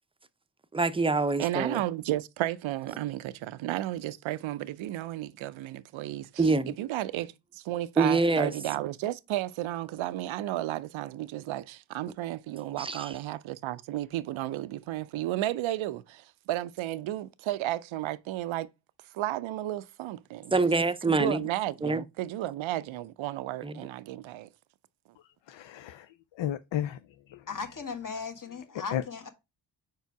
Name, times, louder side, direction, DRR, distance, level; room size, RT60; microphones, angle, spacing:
voice 1, 0.7-1.8 6.4-6.7 8.0-8.5 12.8-13.1 20.5-21.4 21.8-22.0 23.6-23.7, right 3 dB, 10° right, 0.5 m, -25 dB
voice 2, 1.4-6.5 6.8-18.7 19.1-20.7 21.1-24.5, right 14 dB, 85° right, 0.5 m, -33 dB
voice 3, 25.5-26.1 26.4-27.0 27.3-27.4 28.9-29.0, left 11 dB, 70° left, 0.6 m, -32 dB
voice 4, 27.5-29.3, left 5 dB, 45° left, 1.5 m, -37 dB
5.0 x 4.6 x 4.6 m
cardioid pair, 60°, 46 cm